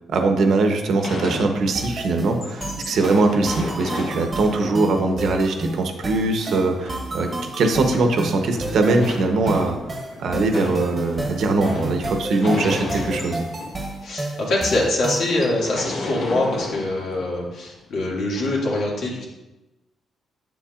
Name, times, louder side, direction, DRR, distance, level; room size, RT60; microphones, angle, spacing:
voice 1, 0.1-9.8 10.2-13.5, right 3 dB, 65° right, 5 dB, 0.9 m, -21 dB
sound 1, 0.9-2.0 2.3-14.0 14.4-14.5 14.6-14.9 15.2-17.4 18.3-18.6, left 2 dB, 55° left, 1.4 m, -34 dB
sound 2, 1.7-15.4, right 2 dB, 25° right, 1.1 m, -31 dB
voice 2, 14.0-19.2, left 1 dB, 75° left, -4 dB, 2.1 m, -24 dB
7.7 x 7.1 x 2.5 m, 1.0 s
cardioid pair, 110°, 0 cm